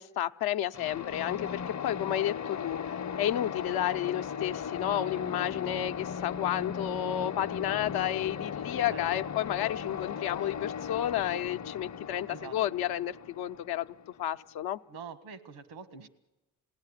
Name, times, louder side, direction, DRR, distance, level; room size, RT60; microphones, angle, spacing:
voice 1, 0.0-13.9 14.2-14.8, left 12 dB, 75° left, 10 dB, 0.8 m, -31 dB
sound 1, 0.7-14.4, left 7 dB, 45° left, 0.8 m, -37 dB
voice 2, 8.9-9.2 12.3-12.6 14.9-16.1, right 6 dB, 90° right, 10 dB, 1.6 m, -45 dB
27.0 x 17.5 x 9.9 m, 1.1 s
supercardioid pair, 55°, 38 cm